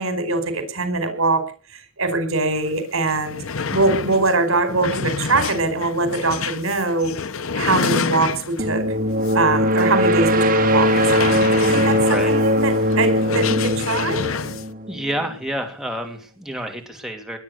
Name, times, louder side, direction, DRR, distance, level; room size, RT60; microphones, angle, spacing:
voice 1, 0.0-1.4 2.0-3.4 3.7-7.1 7.5-8.8 9.3-14.3, right 3 dB, 75° right, 9 dB, 4.9 m, -22 dB
sound 1, 2.7-2.8 3.0-8.7 9.2-9.4 9.8-9.9 10.8-14.7, left 5 dB, 75° left, 1.0 m, -28 dB
sound 2, 8.6-15.2, equal, 40° right, 2.8 m, -20 dB
voice 2, 12.0-12.3 14.9-17.4, right 1 dB, ahead, 3 dB, 2.9 m, -29 dB
21.0 x 9.6 x 6.8 m, 0.39 s
head